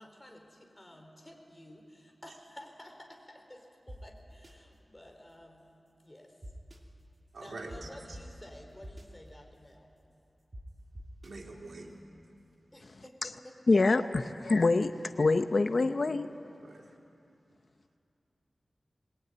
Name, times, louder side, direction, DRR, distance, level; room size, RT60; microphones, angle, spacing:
voice 1, 0.0-5.7 6.0-6.4 7.4-9.9 12.7-13.8, left 1 dB, 20° left, 4.3 m, -52 dB
sound 1, 3.9-4.0 4.4-4.5 6.4-6.8 7.7-7.8 8.1-8.2 8.8-9.0 10.5-10.6 10.9-11.3, equal, 35° right, 2.9 m, -44 dB
voice 2, 7.3-7.9 11.2-11.9 16.6-17.0, right 2 dB, 80° right, 3.3 m, -45 dB
voice 3, 13.7-16.3, left 3 dB, 60° left, 0.8 m, -25 dB
22.0 x 21.0 x 9.4 m
wide cardioid pair, 60°, 0 cm